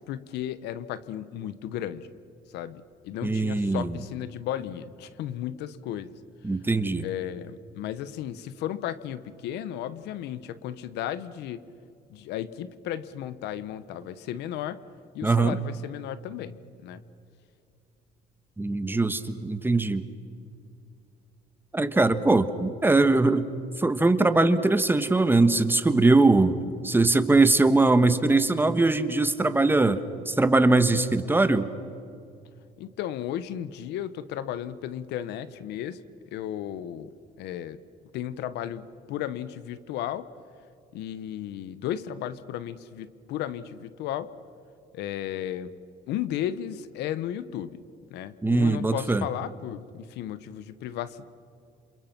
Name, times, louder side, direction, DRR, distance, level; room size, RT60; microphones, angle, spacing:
voice 1, 0.0-2.1 2.5-6.1 7.0-11.6 12.1-14.8 15.1-16.5 16.8-17.0 32.8-36.0 36.3-37.1 37.4-37.8 38.1-40.3 40.9-44.3 44.9-45.7 46.1-47.8 48.1-51.2, left 11 dB, 85° left, 15 dB, 1.2 m, -34 dB
voice 2, 3.2-3.9 6.4-7.1 15.2-15.6 18.6-20.0 21.7-23.5 23.8-26.6 26.8-31.7 48.4-49.2, right 2 dB, 10° right, 11 dB, 1.4 m, -21 dB
28.5 x 28.0 x 6.0 m, 2.5 s
cardioid pair, 110°, 17 cm